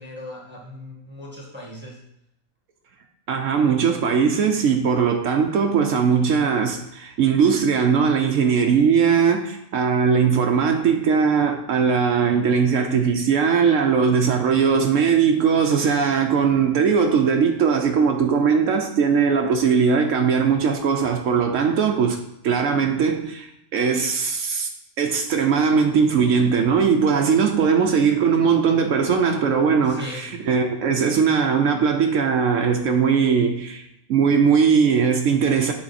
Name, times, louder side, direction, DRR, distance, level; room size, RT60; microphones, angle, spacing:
voice 1, 0.0-2.0 14.4-14.8 27.6-27.8 29.8-30.3, left 1 dB, 10° right, 1.6 m, -39 dB
voice 2, 3.3-24.7 25.0-35.7, right 6 dB, 75° right, 1.1 m, -20 dB
8.7 x 3.9 x 4.2 m
omnidirectional pair, 1.3 m